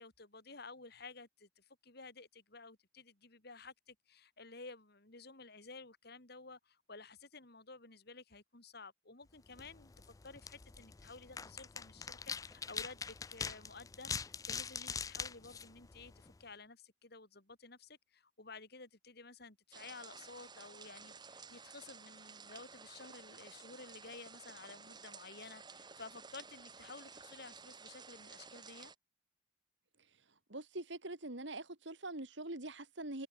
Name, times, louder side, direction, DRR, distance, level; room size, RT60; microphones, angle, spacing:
voice 1, 0.0-14.2 14.5-28.9, left 3 dB, 55° left, 3.3 m, -53 dB
sound 1, 9.5-16.4, left 6 dB, 20° left, 0.4 m, -44 dB
sound 2, 19.7-28.9, right 5 dB, 25° right, 1.4 m, -54 dB
voice 2, 30.5-33.3, right 2 dB, 70° right, 2.9 m, -44 dB
head